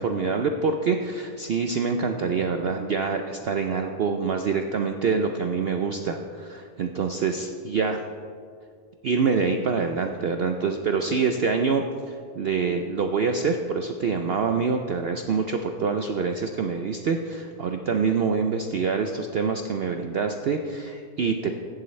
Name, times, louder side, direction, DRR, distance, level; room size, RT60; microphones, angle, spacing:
voice 1, 0.0-8.0 9.0-21.5, right 5 dB, 85° right, 5 dB, 0.5 m, -26 dB
15.0 x 10.5 x 3.2 m, 2.3 s
omnidirectional pair, 1.7 m